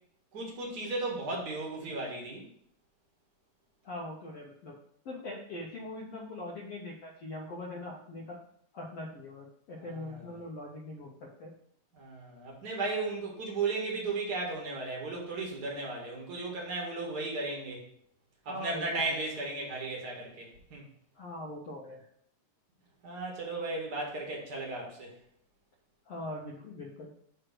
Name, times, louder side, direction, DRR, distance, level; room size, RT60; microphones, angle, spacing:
voice 1, 0.3-2.4 9.8-10.3 11.9-17.9 18.5-20.8 23.0-25.1, right 3 dB, 40° right, -1 dB, 1.8 m, -35 dB
voice 2, 3.8-4.8 5.0-8.4 8.7-11.5 18.5-19.2 21.1-22.0 26.1-27.1, left 1 dB, 65° left, -2 dB, 1.6 m, -42 dB
7.9 x 3.2 x 6.0 m, 0.66 s
omnidirectional pair, 3.7 m